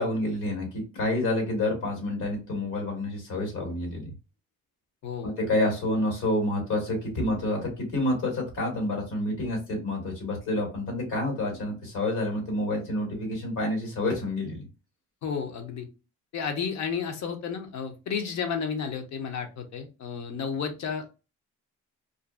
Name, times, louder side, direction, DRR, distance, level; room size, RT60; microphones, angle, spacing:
voice 1, 0.0-4.1 5.2-14.6, left 1 dB, 80° left, 2 dB, 1.5 m, -28 dB
voice 2, 5.0-5.3 15.2-15.9 16.3-21.2, left 6 dB, 60° left, 6 dB, 0.7 m, -32 dB
2.6 x 2.4 x 2.2 m, 0.30 s
cardioid pair, 80°, 31 cm